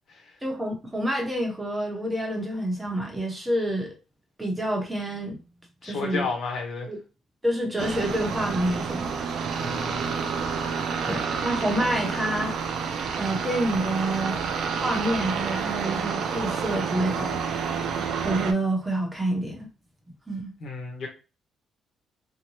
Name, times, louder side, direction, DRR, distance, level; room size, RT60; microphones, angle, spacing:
voice 1, 0.4-3.9 4.4-5.4 5.9-6.3 6.9-7.0 7.4-9.1 11.1-12.6 13.1-14.4 14.8-17.4 18.2-19.7 20.3-20.5, right 1 dB, 15° right, 0.9 m, -28 dB
voice 2, 5.8-6.9 9.6-10.2 20.6-21.1, left 4 dB, 65° left, 1.1 m, -32 dB
sound 1, 7.8-18.5, right 6 dB, 70° right, 0.4 m, -29 dB
2.7 x 2.2 x 3.0 m
cardioid pair, 90°, 0 cm